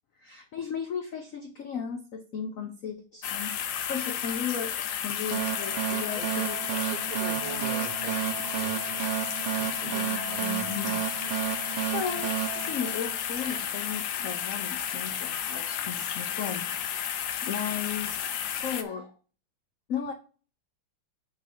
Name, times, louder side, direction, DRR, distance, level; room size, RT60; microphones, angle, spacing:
voice 1, 0.2-6.7 9.8-11.0 11.4-12.3 12.7-18.3 18.6-19.1 19.9-20.1, left 7 dB, 80° left, 0.7 m, -36 dB
sound 1, 3.2-18.8, left 9 dB, 65° left, 1.3 m, -32 dB
sound 2, 5.3-13.6, right 16 dB, 85° right, 1.6 m, -32 dB
voice 2, 5.9-6.3 6.7-9.0 9.5-11.0, right 4 dB, 30° right, 0.8 m, -43 dB
5.4 x 5.3 x 5.4 m
omnidirectional pair, 2.4 m